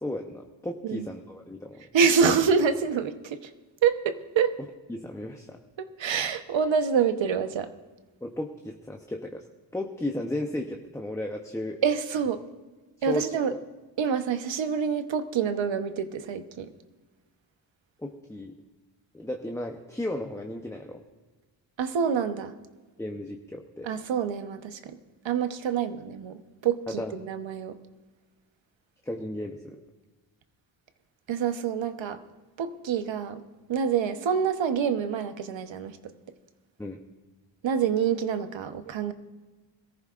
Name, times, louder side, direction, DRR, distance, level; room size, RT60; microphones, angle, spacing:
voice 1, 0.0-1.9 4.9-5.6 8.2-9.5 9.7-11.8 13.0-13.6 18.0-18.6 19.1-21.0 23.0-23.9 26.9-27.1 29.0-29.8 36.8-37.0, left 1 dB, 5° left, 3 dB, 0.8 m, -34 dB
voice 2, 1.9-3.5 3.8-4.6 5.8-7.7 11.8-12.4 13.0-13.5 14.0-16.7 21.8-22.5 23.8-25.0 25.2-27.8 31.3-32.2 32.6-33.4 33.7-36.0 37.6-39.1, right 6 dB, 70° right, 9 dB, 1.0 m, -26 dB
22.0 x 14.5 x 2.5 m, 1.3 s
cardioid pair, 105°, 47 cm